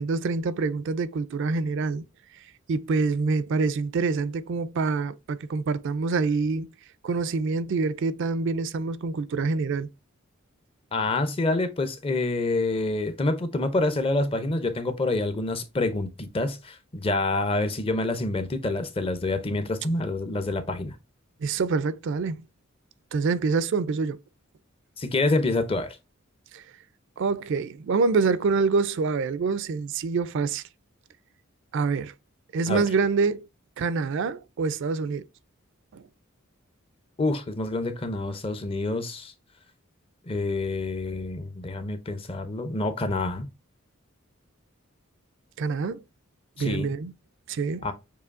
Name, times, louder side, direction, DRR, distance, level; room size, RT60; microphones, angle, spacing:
voice 1, 0.0-2.0 2.7-6.7 7.0-9.9 21.4-22.4 23.1-24.2 26.5-26.6 27.2-30.6 31.7-32.1 32.5-33.5 33.8-35.3 35.9-36.0 45.6-46.0 46.6-47.1 47.5-47.9, right 4 dB, 60° right, 0.4 m, -26 dB
voice 2, 10.9-20.9 25.0-26.0 32.7-32.8 37.2-39.3 40.3-43.5 46.6-46.9 47.8-47.9, left 2 dB, 25° left, 0.6 m, -27 dB
6.8 x 2.6 x 2.5 m
head